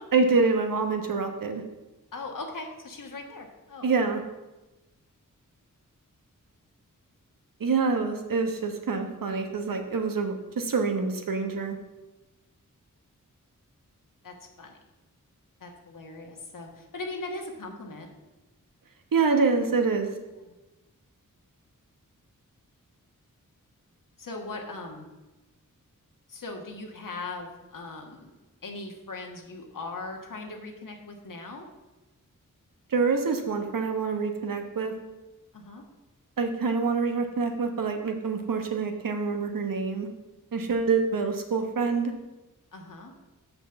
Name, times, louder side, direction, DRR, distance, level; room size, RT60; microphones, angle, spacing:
voice 1, 0.1-1.6 3.8-4.2 7.6-11.8 19.1-20.1 32.9-34.9 36.4-40.1 40.5-42.1, right 4 dB, 85° right, 5 dB, 1.1 m, -26 dB
voice 2, 2.1-3.9 14.2-14.8 15.6-18.1 20.1-20.5 24.2-25.1 26.3-28.3 28.6-31.7 35.5-35.8 42.7-43.1, left 3 dB, 75° left, 2 dB, 1.5 m, -39 dB
6.3 x 6.0 x 6.9 m, 1.1 s
wide cardioid pair, 85°, 33 cm